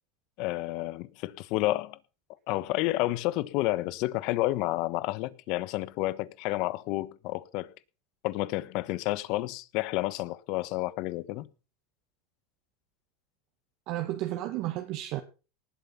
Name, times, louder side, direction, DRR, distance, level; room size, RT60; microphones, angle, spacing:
voice 1, 0.4-2.0 2.5-7.7 8.2-11.5, left 18 dB, 60° left, 1.1 m, -30 dB
voice 2, 13.9-15.2, right 15 dB, 60° right, 1.8 m, -32 dB
19.0 x 7.9 x 5.8 m
supercardioid pair, 110°, 0 cm